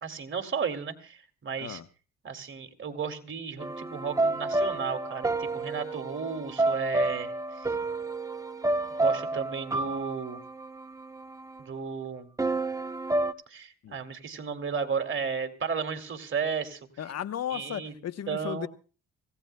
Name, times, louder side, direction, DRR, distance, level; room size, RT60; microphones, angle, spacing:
voice 1, 0.0-1.8 2.2-7.7 9.0-10.4 11.6-12.3 13.5-16.8 17.5-17.9 18.3-18.7, right 6 dB, 40° right, 7 dB, 2.5 m, -34 dB
sound 1, 3.6-11.6 12.4-13.3, right 2 dB, 10° right, 0.9 m, -30 dB
voice 2, 17.0-18.7, left 10 dB, 55° left, 13 dB, 0.9 m, -35 dB
25.5 x 17.0 x 2.2 m, 0.36 s
cardioid pair, 90°, 30 cm